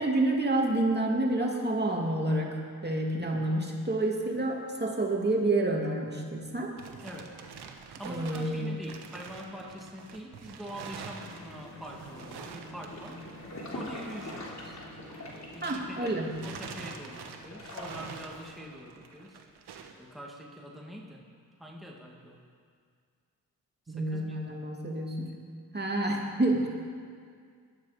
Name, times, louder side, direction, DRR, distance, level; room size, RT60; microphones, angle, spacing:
voice 1, 0.0-6.7 8.1-8.8 15.6-16.3 23.9-25.4 25.7-26.7, right 2 dB, 25° right, 0 dB, 2.5 m, -29 dB
sound 1, 6.4-16.0 16.3-20.0, right 6 dB, 80° right, 1.3 m, -46 dB
voice 2, 7.0-7.4 7.8-13.2 13.7-19.4 20.0-21.2 21.6-22.4 23.9-24.5, equal, ahead, -2 dB, 2.3 m, -44 dB
sound 2, 11.1-18.5, left 1 dB, 45° left, 3.3 m, -44 dB
18.5 x 12.0 x 5.2 m, 2.1 s
cardioid pair, 55°, 39 cm